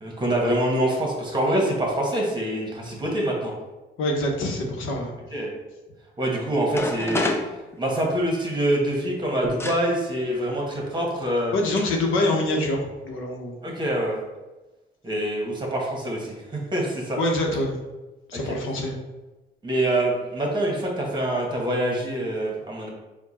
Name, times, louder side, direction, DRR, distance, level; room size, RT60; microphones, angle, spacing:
voice 1, 0.0-3.5 5.3-5.5 6.2-7.3 7.8-11.5 13.6-14.2 15.0-17.2 19.6-22.9, right 1 dB, 20° right, -1 dB, 1.3 m, -25 dB
voice 2, 4.0-5.1 7.0-7.1 11.5-13.6 17.2-17.8 18.3-19.0, left 1 dB, 85° left, 1 dB, 0.9 m, -25 dB
sound 1, 6.7-8.3 9.6-9.8 10.9-11.0 11.8-12.0 12.3-12.7, left 2 dB, 10° left, 0.5 m, -29 dB
4.5 x 2.3 x 4.2 m, 1.1 s
cardioid pair, 90°, 20 cm